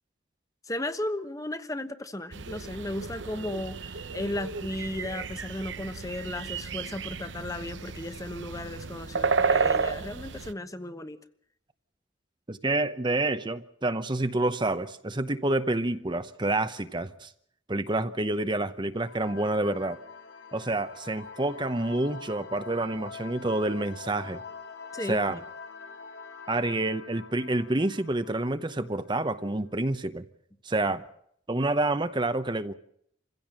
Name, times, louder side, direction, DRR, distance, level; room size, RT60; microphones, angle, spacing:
voice 1, 0.7-11.2 24.9-25.4, left 1 dB, 20° left, 1.1 m, -35 dB
sound 1, 2.3-10.5, right 5 dB, 75° right, 0.9 m, -32 dB
voice 2, 12.5-17.3 17.7-20.0 20.5-24.4 25.1-25.4 26.5-30.2 30.6-31.0 31.5-32.7, right 2 dB, 25° right, 0.9 m, -28 dB
sound 2, 19.0-29.3, left 4 dB, 80° left, 3.8 m, -45 dB
27.5 x 16.0 x 7.6 m
head